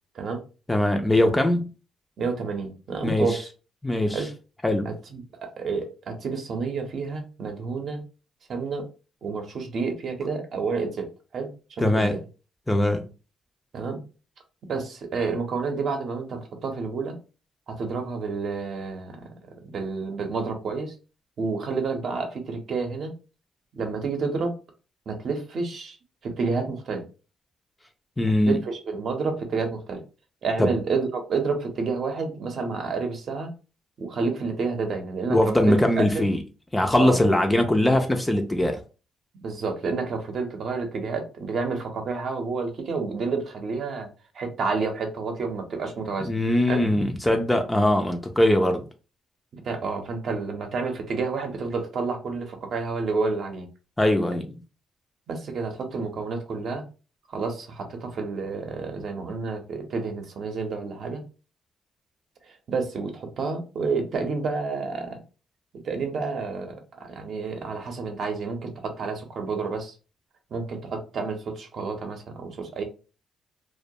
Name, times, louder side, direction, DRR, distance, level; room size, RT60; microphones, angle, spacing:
voice 1, 0.7-1.7 3.0-3.4 3.8-4.2 4.6-4.9 11.8-12.2 12.7-13.1 28.2-28.6 30.6-30.7 35.3-36.4 36.7-38.8 46.2-48.8 54.0-54.6, left 1 dB, 10° left, 0.3 m, -21 dB
voice 2, 2.2-3.5 4.1-4.3 4.8-8.0 8.5-8.9 9.2-11.1 11.3-12.2 13.7-14.0 14.7-17.2 17.7-19.3 19.6-20.9 21.4-23.1 23.7-24.6 25.1-26.0 26.2-27.0 28.2-30.0 30.4-33.5 34.0-35.8 36.1-36.2 37.0-37.4 39.4-44.1 44.3-46.3 46.7-46.8 49.5-53.7 55.3-56.8 57.3-61.2 62.4-65.2 65.8-69.9 70.5-72.8, right 4 dB, 60° right, 0.6 m, -29 dB
2.2 x 2.1 x 2.7 m
cardioid pair, 90°, 0 cm